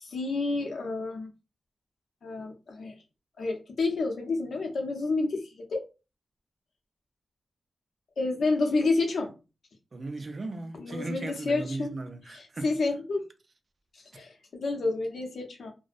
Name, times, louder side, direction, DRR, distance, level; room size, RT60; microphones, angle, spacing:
voice 1, 0.0-1.3 2.2-2.9 3.4-5.8 8.2-9.3 10.7-11.9 12.3-13.2 14.1-15.7, left 3 dB, 70° left, 0.6 m, -29 dB
voice 2, 9.9-12.7, right 2 dB, 45° right, 0.4 m, -37 dB
2.5 x 2.0 x 2.4 m
wide cardioid pair, 100°, 0 cm